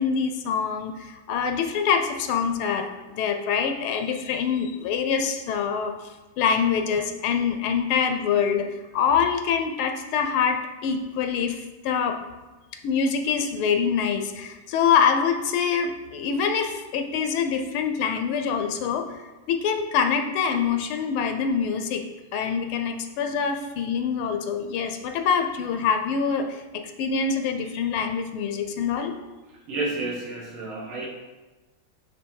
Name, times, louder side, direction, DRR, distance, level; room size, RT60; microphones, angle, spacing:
voice 1, 0.0-5.9 6.4-12.2 12.8-19.1 19.5-22.0 22.3-29.1, left 6 dB, 80° left, 6 dB, 1.4 m, -25 dB
voice 2, 29.7-31.1, right 2 dB, 70° right, -1 dB, 2.0 m, -30 dB
8.2 x 3.3 x 4.7 m, 1.1 s
omnidirectional pair, 2.4 m